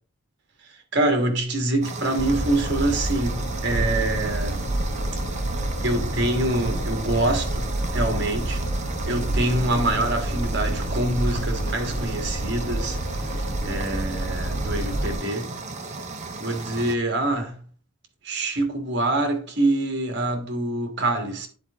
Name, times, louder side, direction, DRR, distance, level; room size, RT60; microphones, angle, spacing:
voice 1, 0.9-4.6 5.8-8.6 9.1-15.6 16.4-17.6 18.2-21.5, right 2 dB, 55° right, 1.6 m, -25 dB
sound 1, 1.8-17.0, right 3 dB, 35° right, 0.8 m, -35 dB
sound 2, 2.2-15.1, right 1 dB, 60° left, 2.9 m, -28 dB
9.7 x 4.4 x 3.6 m
head